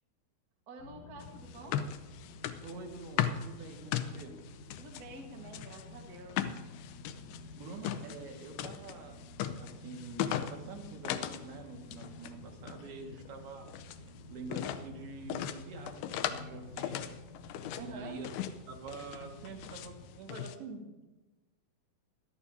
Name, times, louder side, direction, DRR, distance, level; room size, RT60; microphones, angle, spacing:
voice 1, 0.7-2.0 4.8-6.4 17.7-18.1, right 2 dB, 60° right, 1 dB, 0.9 m, -48 dB
sound 1, 0.8-20.2, left 2 dB, 55° left, 2.2 m, -51 dB
sound 2, 1.2-5.0 5.5-11.5 11.7-12.3 12.6-14.0 14.5-14.9 15.3-16.5 16.8-17.9 18.3-18.6 18.9-19.9 20.3-20.6, left 10 dB, 85° left, 2.6 m, -37 dB
voice 2, 2.6-4.4 7.5-9.3 9.6-13.7 14.3-17.1 17.8-18.3 18.7-21.1, right 3 dB, 80° right, 1 dB, 3.7 m, -46 dB
20.0 x 13.0 x 2.7 m, 1.1 s
omnidirectional pair, 4.4 m